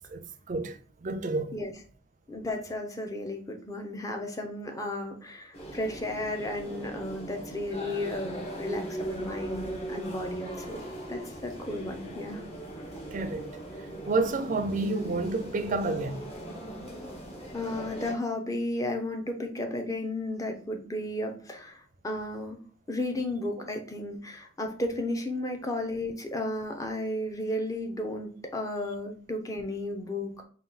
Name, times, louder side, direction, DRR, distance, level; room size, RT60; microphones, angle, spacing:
voice 1, 0.1-1.5 13.1-13.5 14.1-16.2, right 2 dB, 40° right, 0.4 m, -30 dB
voice 2, 2.3-10.8 11.1-12.4 17.5-22.6 22.9-30.4, left 1 dB, 15° left, 0.6 m, -33 dB
sound 1, 5.5-18.1, right 1 dB, 30° left, 1.0 m, -39 dB
3.9 x 2.3 x 3.9 m
head